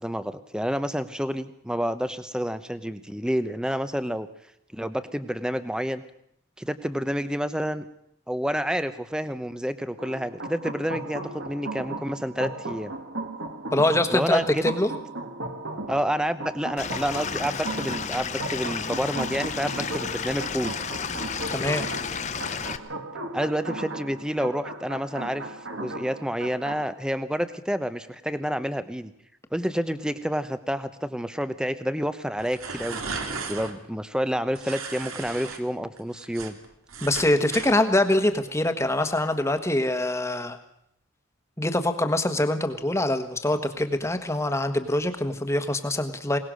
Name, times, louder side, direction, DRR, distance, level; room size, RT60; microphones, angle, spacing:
voice 1, 0.0-4.3 4.7-6.0 6.6-7.8 8.3-12.9 14.1-14.6 15.9-20.8 23.3-29.1 29.5-33.0 33.5-36.6, equal, 5° right, 12 dB, 0.8 m, -29 dB
sound 1, 10.0-26.9, right 2 dB, 60° right, 1.8 m, -36 dB
voice 2, 13.7-14.9 21.5-21.9 37.0-40.6 41.6-46.4, left 1 dB, 15° left, 7 dB, 1.3 m, -24 dB
Stream / Liquid, 16.8-22.8, left 6 dB, 35° left, 0.8 m, -32 dB
sound 2, 32.4-33.7 34.6-35.6 36.0-37.7, right 4 dB, 85° right, 2.6 m, -35 dB
21.5 x 19.0 x 6.4 m, 0.73 s
head